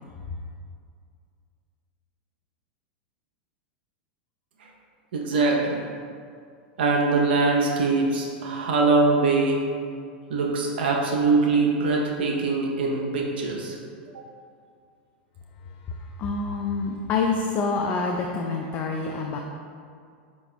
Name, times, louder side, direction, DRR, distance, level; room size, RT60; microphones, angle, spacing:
voice 1, 5.1-5.8 6.8-9.6 10.3-13.8, right 3 dB, 75° right, -1 dB, 0.7 m, -22 dB
voice 2, 16.2-19.4, left 4 dB, 35° left, 1 dB, 0.4 m, -26 dB
5.5 x 4.1 x 2.2 m, 2.3 s
hypercardioid pair, 110°, 5 cm